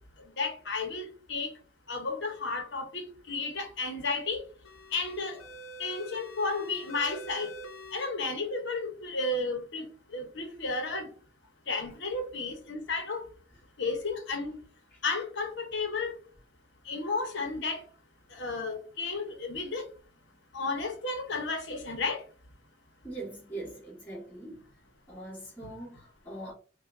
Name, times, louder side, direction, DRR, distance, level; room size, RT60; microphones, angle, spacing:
voice 1, 0.4-1.5 1.9-4.4 4.9-5.4 5.8-7.5 7.9-9.9 10.1-11.1 11.7-13.2 13.8-14.6 15.0-16.1 16.9-17.8 18.4-19.8 20.5-22.2, left 3 dB, 55° left, 1.0 m, -32 dB
sound 1, 4.6-8.1, right 1 dB, 75° left, 0.7 m, -45 dB
voice 2, 23.0-24.6 25.1-26.5, right 2 dB, 10° left, 1.8 m, -42 dB
5.4 x 2.3 x 2.7 m
head